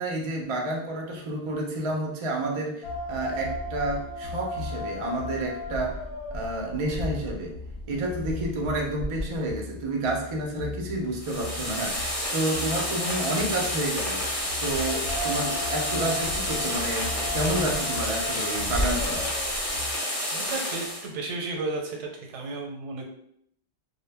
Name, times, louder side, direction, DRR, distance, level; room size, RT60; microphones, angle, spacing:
voice 1, 0.0-6.0 6.3-7.6 7.9-14.2 14.6-19.3, right 1 dB, 60° right, 0 dB, 0.3 m, -30 dB
sound 1, 2.8-19.9, left 2 dB, 70° left, 0.8 m, -35 dB
sound 2, 11.1-21.1, equal, 20° left, 0.4 m, -30 dB
voice 2, 20.3-23.1, right 3 dB, 85° right, 1 dB, 0.9 m, -33 dB
2.1 x 2.0 x 3.3 m, 0.71 s
omnidirectional pair, 1.2 m